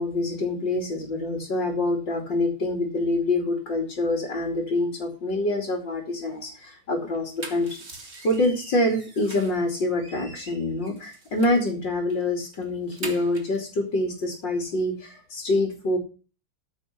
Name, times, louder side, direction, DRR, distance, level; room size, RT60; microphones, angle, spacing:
voice 1, 0.0-7.8 8.2-16.0, left 2 dB, 75° left, 2 dB, 3.5 m, -26 dB
sound 1, 7.1-9.6 10.0-11.7 12.1-12.2 12.5-13.6, right 3 dB, 35° right, 2.4 m, -42 dB
14.5 x 6.4 x 5.9 m, 0.35 s
omnidirectional pair, 2.0 m